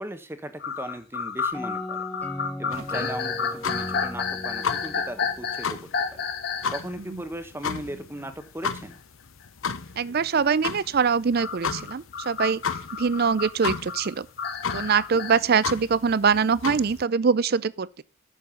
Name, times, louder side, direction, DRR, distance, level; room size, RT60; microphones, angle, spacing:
voice 1, 0.0-2.0 2.6-5.8 6.1-6.2 6.7-9.0 15.1-15.4, right 1 dB, 10° right, 1.2 m, -37 dB
sound 1, 0.6-6.9 7.4-7.5 8.9-9.0 11.4-15.4, left 6 dB, 50° left, 1.3 m, -31 dB
sound 2, 1.5-6.2, left 1 dB, 5° left, 0.5 m, -37 dB
sound 3, 2.7-17.0, left 5 dB, 70° left, 0.8 m, -34 dB
voice 2, 10.0-12.6 12.9-14.3 14.7-17.9, right 6 dB, 45° right, 0.4 m, -23 dB
8.9 x 7.0 x 5.8 m
head